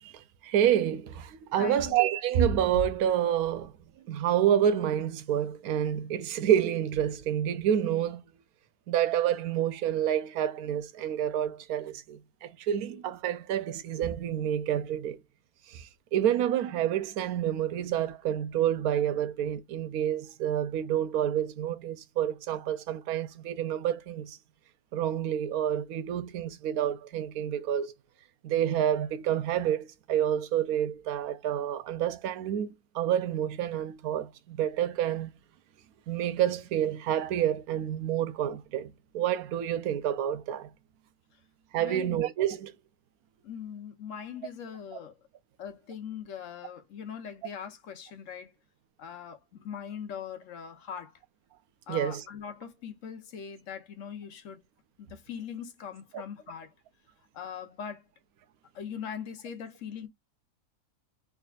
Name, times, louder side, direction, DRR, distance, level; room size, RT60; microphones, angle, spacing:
voice 1, 0.0-3.7 4.1-8.2 8.9-15.2 15.7-24.4 24.9-27.9 28.4-32.7 32.9-35.3 36.1-40.7 41.7-42.7 51.9-52.2 56.1-56.2, right 10 dB, 90° right, 1.1 m, -28 dB
voice 2, 1.6-2.0 41.8-42.2 43.4-45.2 45.6-48.5 49.0-51.1 51.9-54.6 55.0-56.7 57.3-58.0 58.7-60.1, left 8 dB, 65° left, 1.1 m, -41 dB
3.6 x 3.3 x 2.3 m
omnidirectional pair, 1.5 m